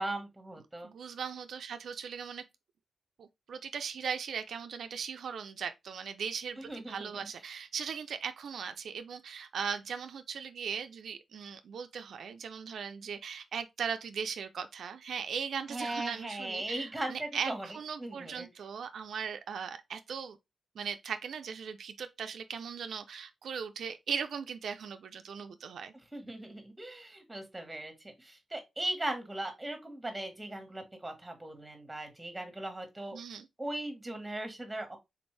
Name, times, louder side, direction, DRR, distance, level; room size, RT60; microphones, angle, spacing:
voice 1, 0.0-0.9 6.6-7.2 15.7-17.7 18.0-18.5 26.1-33.2 33.6-35.0, right 1 dB, 10° right, 1.2 m, -38 dB
voice 2, 0.8-2.4 3.2-20.4 20.8-25.9 33.1-33.5, right 6 dB, 80° right, 0.3 m, -38 dB
3.8 x 2.6 x 3.1 m
cardioid pair, 90°, 0 cm